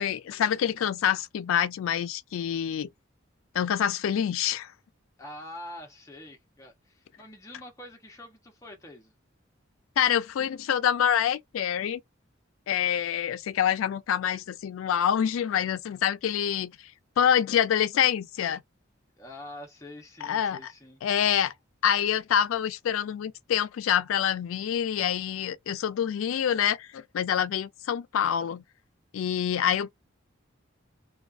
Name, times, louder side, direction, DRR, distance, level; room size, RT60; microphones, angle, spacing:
voice 1, 0.0-2.9 3.5-4.7 10.0-12.0 12.7-16.7 17.2-18.6 20.2-20.6 21.0-21.5 21.8-28.6 29.1-29.9, left 9 dB, 85° left, 0.3 m, -26 dB
voice 2, 5.2-9.1 19.2-21.0, left 1 dB, 15° left, 0.7 m, -45 dB
2.3 x 2.3 x 2.4 m
head